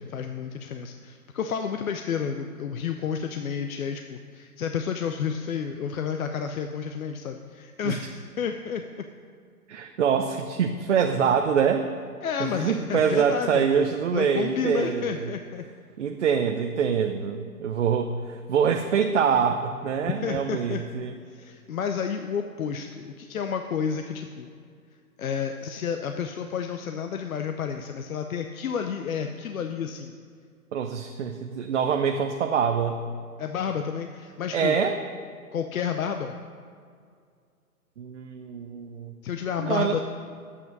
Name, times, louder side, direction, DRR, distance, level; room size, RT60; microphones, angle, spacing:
voice 1, 0.0-8.8 12.2-13.6 14.1-15.6 20.1-20.8 21.3-24.5 25.2-30.1 33.4-34.8 35.5-36.4 39.2-40.0, left 7 dB, 65° left, 5 dB, 0.7 m, -30 dB
voice 2, 9.7-11.9 12.4-15.3 16.0-21.1 30.7-33.0 34.5-35.0 38.0-39.1 39.6-40.0, right 7 dB, 50° right, 5 dB, 0.7 m, -25 dB
9.6 x 8.4 x 5.3 m, 2.2 s
hypercardioid pair, 155°, 46 cm